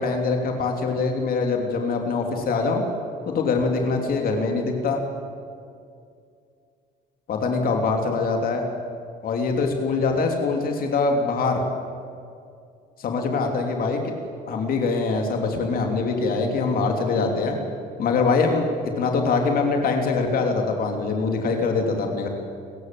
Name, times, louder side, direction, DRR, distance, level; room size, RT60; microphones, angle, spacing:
voice 1, 0.0-2.8 3.3-5.0 7.3-8.7 9.2-11.6 13.0-14.1 14.5-17.6 18.0-22.3, left 4 dB, 60° left, 3 dB, 3.1 m, -23 dB
29.5 x 15.0 x 7.8 m, 2.4 s
cardioid pair, 110°, 17 cm